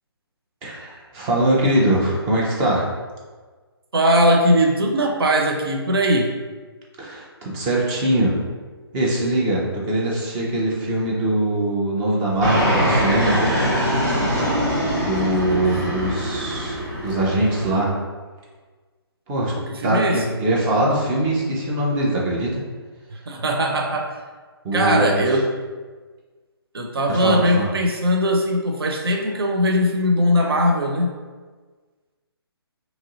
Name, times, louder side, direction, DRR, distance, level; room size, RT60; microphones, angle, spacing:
voice 1, 0.6-2.9 7.0-8.4 8.9-13.4 15.0-17.9 19.3-19.5 19.8-22.6 24.6-25.2 27.1-27.7, right 1 dB, 15° right, -4 dB, 0.5 m, -22 dB
voice 2, 3.9-6.3 15.5-15.6 19.6-20.2 23.1-24.1 24.7-25.5 26.7-31.1, equal, 65° right, 1 dB, 0.5 m, -20 dB
Fixed-wing aircraft airplane, 12.4-17.8, equal, 40° right, 1.0 m, -22 dB
2.9 x 2.6 x 3.8 m, 1.4 s
figure-of-eight pair, 140°, 13 cm